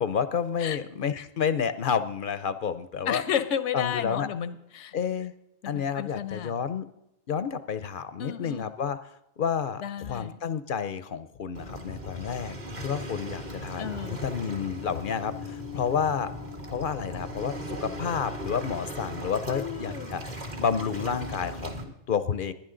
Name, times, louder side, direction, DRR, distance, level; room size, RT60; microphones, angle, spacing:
voice 1, 0.0-3.2 3.7-4.3 4.9-5.3 5.7-6.9 7.3-13.9 14.2-16.3 16.7-20.2 20.6-22.5, left 7 dB, 55° left, 12 dB, 0.7 m, -30 dB
voice 2, 3.1-4.9 5.6-6.6 8.2-8.7 9.8-10.4 13.8-14.2 19.5-20.1, left 9 dB, 85° left, 12 dB, 1.1 m, -32 dB
Waves surf, 11.5-21.8, equal, 40° right, 1.6 m, -38 dB
19.0 x 10.5 x 3.8 m, 0.84 s
omnidirectional pair, 1.2 m